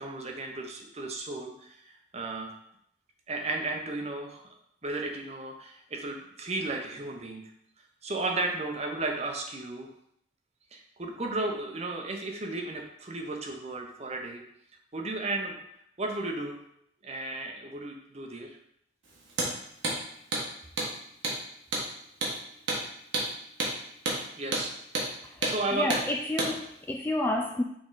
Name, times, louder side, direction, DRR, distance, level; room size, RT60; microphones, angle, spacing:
voice 1, 0.0-2.5 3.3-4.4 4.8-7.4 8.0-9.9 10.7-14.4 14.9-15.6 16.0-16.6 17.0-18.6 24.4-24.7 25.4-25.9, right 2 dB, 35° right, 2 dB, 0.8 m, -34 dB
Hammer, 19.3-19.5 19.8-20.0 20.3-20.5 20.8-20.9 21.2-21.4 21.7-21.9 22.2-22.4 22.7-22.8 23.1-23.3 23.6-23.7 24.0-24.2 24.5-24.7 24.9-25.1 25.4-25.6 25.9-26.0 26.4-26.5, right 2 dB, 85° right, 1.5 m, -29 dB
voice 2, 25.2-27.6, left 1 dB, 10° left, 2 dB, 0.3 m, -30 dB
6.2 x 3.8 x 3.9 m, 0.73 s
head